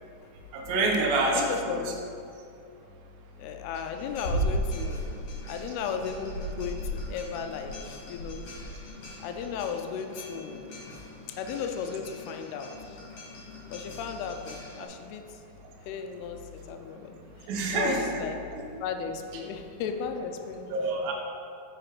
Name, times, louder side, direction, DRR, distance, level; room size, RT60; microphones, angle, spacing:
voice 1, 0.5-1.7 17.5-18.2 18.5-18.6 20.7-21.1, right 2 dB, 70° right, -1 dB, 2.3 m, -27 dB
voice 2, 1.2-2.0 3.4-5.0 5.5-8.4 9.2-10.7 11.4-13.0 13.7-15.2 15.9-17.2 17.7-20.7, left 6 dB, 85° left, 6 dB, 2.3 m, -35 dB
sound 1, 3.9-14.8, equal, 50° left, 1.9 m, -37 dB
7.6 x 5.1 x 4.8 m, 2.5 s
omnidirectional pair, 5.0 m